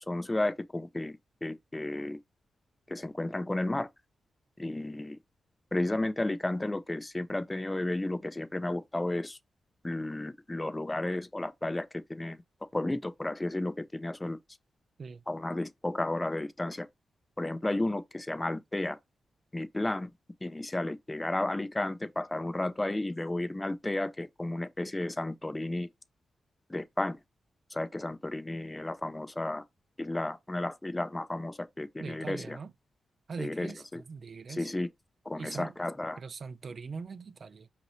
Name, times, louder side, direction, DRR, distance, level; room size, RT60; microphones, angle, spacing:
voice 1, 0.1-2.2 2.9-3.9 4.6-5.2 5.7-9.4 9.8-12.4 12.7-14.4 15.3-16.9 17.4-19.0 19.5-20.1 20.4-25.9 26.7-27.2 27.7-29.6 30.0-32.6 33.4-34.0 34.5-34.9 35.3-36.2, left 1 dB, 15° left, 0.5 m, -33 dB
voice 2, 32.0-32.7 33.3-34.7 35.4-35.7 36.2-37.7, right 5 dB, 55° right, 0.5 m, -41 dB
5.0 x 2.7 x 3.0 m
cardioid pair, 70°, 0 cm